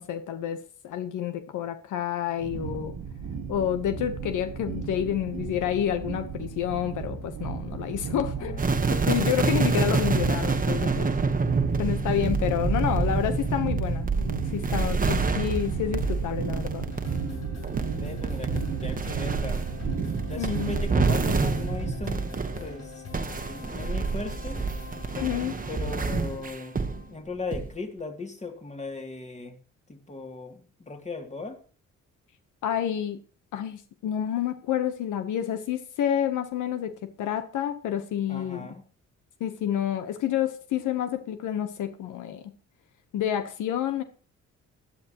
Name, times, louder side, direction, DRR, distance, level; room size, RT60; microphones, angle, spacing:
voice 1, 0.0-2.9 3.5-8.6 8.9-11.1 11.8-16.9 20.4-20.8 25.2-25.5 32.6-33.2 33.5-38.7 39.4-42.5 43.1-44.0, left 10 dB, 80° left, 1.2 m, -29 dB
sound 1, 2.4-21.9, right 6 dB, 85° right, 1.7 m, -34 dB
voice 2, 8.1-8.6 17.9-19.6 20.2-22.2 22.6-24.6 25.7-26.7 27.1-29.6 29.9-31.6 38.3-38.8, left 3 dB, 20° left, 2.8 m, -38 dB
sound 2, 8.6-22.7 23.1-27.0 27.5-27.7, right 4 dB, 30° right, 1.3 m, -27 dB
sound 3, 16.8-27.2, left 4 dB, 60° left, 6.8 m, -44 dB
15.5 x 11.5 x 3.1 m
cardioid pair, 90°, 30 cm